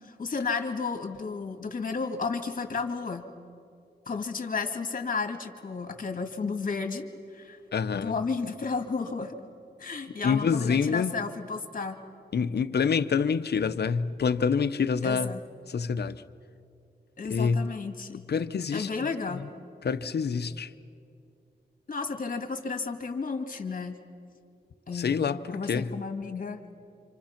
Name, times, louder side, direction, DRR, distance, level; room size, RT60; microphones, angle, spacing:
voice 1, 0.0-3.3 4.1-7.1 7.3-7.6 7.9-9.4 9.8-12.0 15.0-15.4 17.2-18.2 18.7-19.4 21.9-24.0 24.9-26.6, left 4 dB, 50° left, 2.0 m, -32 dB
voice 2, 7.7-8.1 10.2-11.1 12.3-15.3 15.7-16.2 17.2-17.6 18.3-19.5 19.8-20.7 24.9-25.9, left 6 dB, 70° left, 0.8 m, -27 dB
27.5 x 26.5 x 5.9 m
wide cardioid pair, 100°, 18 cm